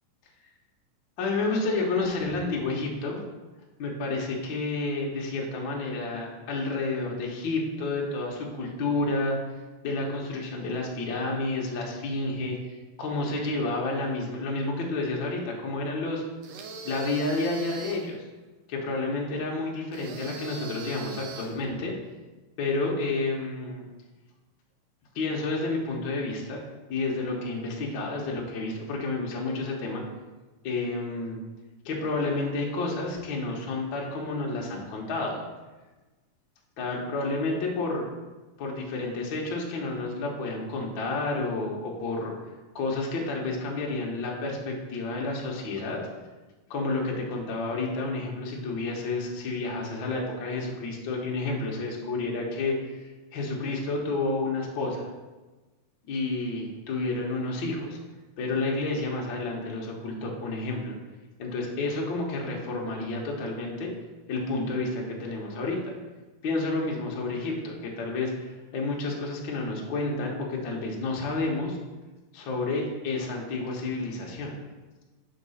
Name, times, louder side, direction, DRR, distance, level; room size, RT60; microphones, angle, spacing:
voice 1, 1.2-3.2 3.8-9.4 9.8-16.2 16.8-18.2 18.7-21.9 22.6-23.8 25.1-26.6 26.9-30.0 30.6-31.4 31.8-35.3 36.8-38.0 38.6-42.3 42.7-46.0 46.7-55.1 56.1-58.0 58.4-60.9 61.4-63.9 64.3-65.8 66.4-71.8 72.3-74.5, left 3 dB, 90° left, -1 dB, 1.0 m, -30 dB
sound 1, 16.4-18.1 19.9-21.6, right 4 dB, 80° right, 1.4 m, -40 dB
6.0 x 3.8 x 5.5 m, 1.2 s
omnidirectional pair, 3.7 m